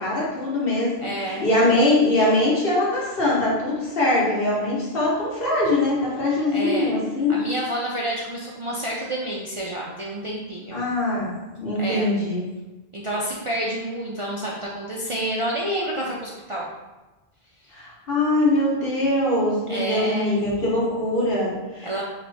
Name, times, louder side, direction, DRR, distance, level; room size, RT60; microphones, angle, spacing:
voice 1, 0.0-7.3 10.7-11.3 11.6-12.4 17.7-21.9, left 1 dB, 65° left, -6 dB, 1.5 m, -22 dB
voice 2, 1.0-1.5 6.5-7.0 7.3-10.9 11.8-12.1 12.9-16.6 19.7-20.4 21.8-22.0, right 1 dB, 45° right, -4 dB, 0.4 m, -29 dB
3.3 x 3.0 x 4.0 m, 1.1 s
omnidirectional pair, 1.1 m